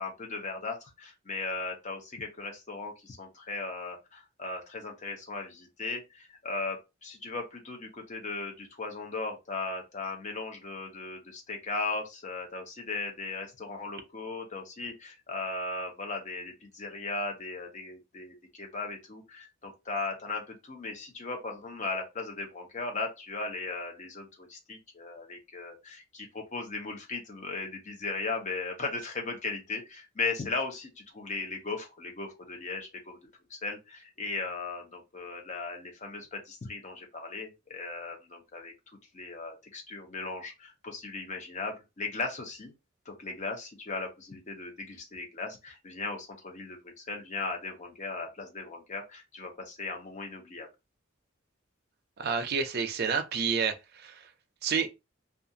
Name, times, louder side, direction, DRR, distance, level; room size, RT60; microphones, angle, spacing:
voice 1, 0.0-33.2 33.5-38.7 39.1-42.7 43.1-50.7, left 3 dB, 35° left, 0.7 m, -37 dB
voice 2, 52.2-54.2 54.6-54.9, right 6 dB, 50° right, 0.5 m, -29 dB
2.4 x 2.3 x 2.7 m
head